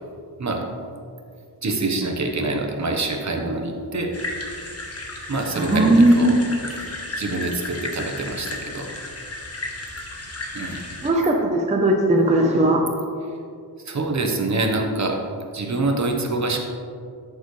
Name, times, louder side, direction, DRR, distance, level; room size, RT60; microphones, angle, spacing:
voice 1, 1.6-4.1 5.3-6.3 7.2-8.9 10.5-10.8 13.8-15.2 15.5-16.6, right 2 dB, 45° right, 3 dB, 1.0 m, -25 dB
sound 1, 4.1-11.1, left 2 dB, 35° left, 1.3 m, -34 dB
voice 2, 5.5-6.3 11.0-12.8, right 1 dB, 15° right, 0 dB, 0.7 m, -17 dB
13.0 x 6.9 x 3.2 m, 2.4 s
wide cardioid pair, 160°, 40 cm